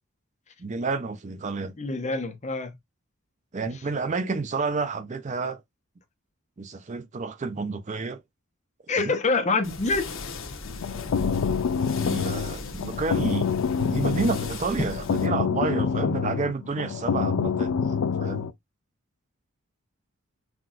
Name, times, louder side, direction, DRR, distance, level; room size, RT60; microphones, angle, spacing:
voice 1, 0.6-1.7 3.5-5.6 6.6-8.2 9.0-9.2 12.0-13.5 13.8-18.5, right 4 dB, 35° right, 0.5 m, -30 dB
voice 2, 1.8-2.7 8.9-10.1 14.8-14.9, left 3 dB, 35° left, 0.7 m, -25 dB
sound 1, 9.6-15.3, left 3 dB, 65° left, 0.9 m, -37 dB
sound 2, 10.7-18.5, left 6 dB, 90° left, 0.4 m, -27 dB
5.8 x 2.3 x 2.4 m
head